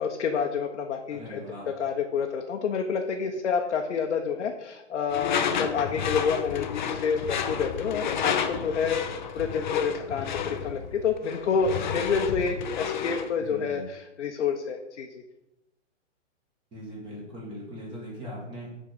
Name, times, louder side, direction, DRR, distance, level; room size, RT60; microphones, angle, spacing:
voice 1, 0.0-1.4 1.8-15.1, left 6 dB, 65° left, 2 dB, 0.9 m, -28 dB
voice 2, 1.1-1.7 13.4-13.8 16.7-18.7, equal, 15° right, -4 dB, 2.0 m, -40 dB
Door / Screech, 5.1-13.3, left 7 dB, 40° left, 0.6 m, -31 dB
6.0 x 4.6 x 6.6 m, 0.94 s
hypercardioid pair, 160°, 38 cm